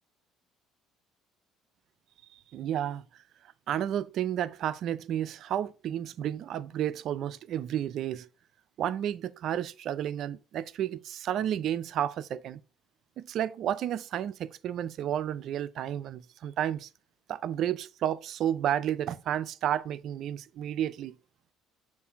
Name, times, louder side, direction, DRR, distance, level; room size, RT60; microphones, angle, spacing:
voice 1, 2.5-3.0 3.7-8.3 8.8-12.6 13.2-16.9 17.3-21.1, right 10 dB, 60° right, 0.4 m, -31 dB
7.1 x 2.6 x 5.6 m
supercardioid pair, 85°, 0 cm